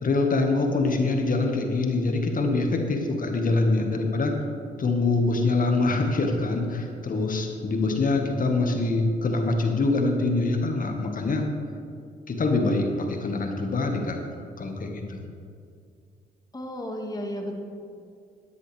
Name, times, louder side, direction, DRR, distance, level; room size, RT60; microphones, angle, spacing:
voice 1, 0.0-4.3 4.8-11.4 12.3-14.2 14.6-15.2, left 3 dB, 45° left, 3 dB, 1.8 m, -24 dB
voice 2, 16.5-17.5, equal, 20° left, 1 dB, 2.2 m, -33 dB
13.0 x 9.7 x 3.5 m, 2.4 s
hypercardioid pair, 50°, 20 cm